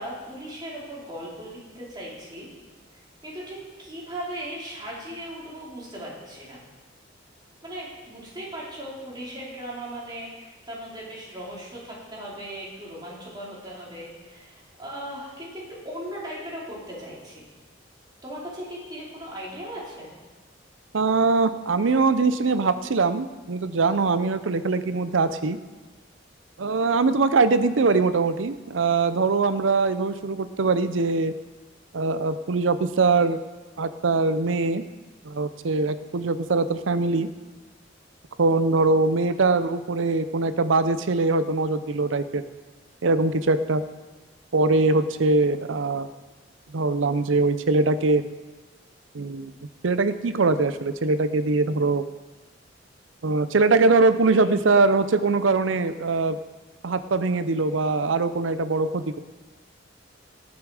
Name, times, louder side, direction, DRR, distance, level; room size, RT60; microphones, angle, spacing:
voice 1, 0.0-2.5 3.2-6.6 7.6-17.5 18.2-20.1 54.3-54.5, right 1 dB, 20° right, -6 dB, 3.8 m, -38 dB
voice 2, 20.9-25.6 26.6-31.3 31.9-33.4 33.8-34.8 35.2-37.3 38.4-42.4 43.0-43.8 44.5-46.1 46.7-48.2 49.1-49.5 49.8-52.0 53.2-56.4 56.8-59.2, right 3 dB, 85° right, 13 dB, 0.6 m, -22 dB
18.5 x 7.1 x 4.9 m, 1.2 s
head